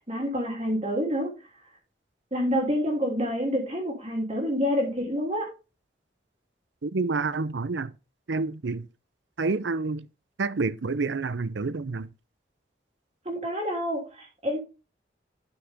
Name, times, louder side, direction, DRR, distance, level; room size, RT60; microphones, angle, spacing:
voice 1, 0.1-1.3 2.3-5.5 13.2-14.6, equal, 35° right, 3.1 m, -27 dB
voice 2, 6.8-7.9 8.3-8.9 9.4-10.1 10.4-12.1, right 3 dB, 80° right, 0.6 m, -28 dB
12.0 x 6.0 x 3.6 m
head